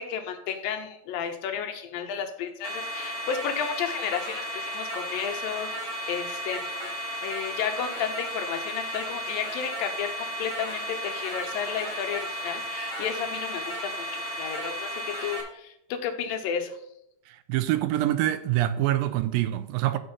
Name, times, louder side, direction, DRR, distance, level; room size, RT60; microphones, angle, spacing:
voice 1, 0.0-6.9 7.2-16.8, left 8 dB, 80° left, 2.7 m, -32 dB
sound 1, 2.6-15.4, equal, 10° right, 1.9 m, -34 dB
voice 2, 17.5-20.0, right 14 dB, 85° right, 2.3 m, -25 dB
8.0 x 6.2 x 5.3 m
omnidirectional pair, 4.1 m